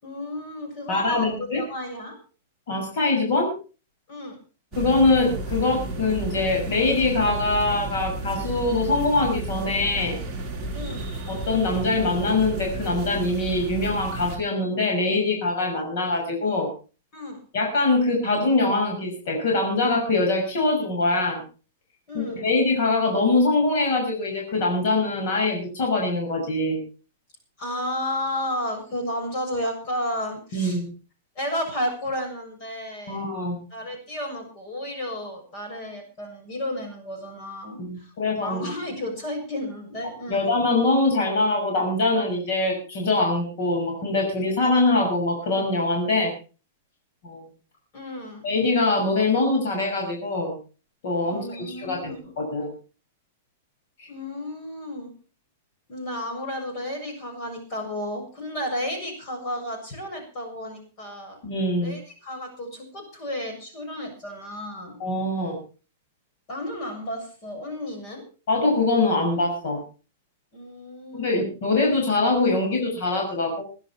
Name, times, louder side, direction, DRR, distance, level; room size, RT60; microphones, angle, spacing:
voice 1, 0.0-2.2 4.1-4.4 10.7-11.1 17.1-17.4 22.1-22.5 27.6-30.8 31.4-33.3 33.7-38.1 38.4-40.5 47.9-48.4 51.3-52.2 54.1-55.1 55.9-61.4 61.8-65.0 66.5-68.2 70.5-71.4, left 1 dB, 30° left, 4 dB, 7.1 m, -32 dB
voice 2, 0.9-1.6 2.7-3.5 4.8-10.2 11.3-16.7 17.5-21.4 22.1-26.8 30.5-30.9 33.1-33.6 37.8-38.7 40.3-46.3 47.2-47.4 48.4-50.5 51.0-52.7 54.0-54.1 61.4-61.9 65.0-65.6 68.5-69.8 71.1-73.6, left 2 dB, 55° left, 1 dB, 6.2 m, -23 dB
sound 1, 4.7-14.4, right 2 dB, 5° right, 4.1 m, -32 dB
22.0 x 11.0 x 4.4 m, 0.36 s
supercardioid pair, 165°, 0 cm